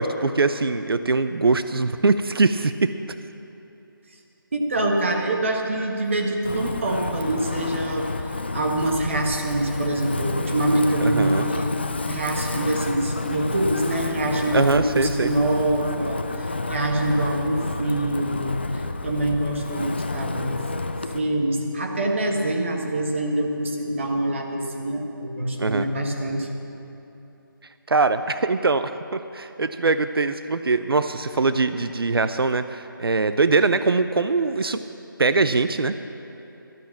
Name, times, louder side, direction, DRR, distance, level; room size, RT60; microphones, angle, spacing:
voice 1, 0.0-2.9 11.0-11.5 14.5-15.3 25.6-25.8 27.9-34.8 35.2-35.9, right 3 dB, 90° right, 11 dB, 0.6 m, -22 dB
voice 2, 4.5-8.1 8.5-11.7 12.1-18.6 19.0-20.6 21.1-26.5, right 1 dB, 35° right, 1 dB, 1.4 m, -25 dB
Wind, 6.4-21.2, left 2 dB, 30° left, 0.4 m, -30 dB
13.0 x 10.5 x 7.4 m, 3.0 s
figure-of-eight pair, 175°, 12 cm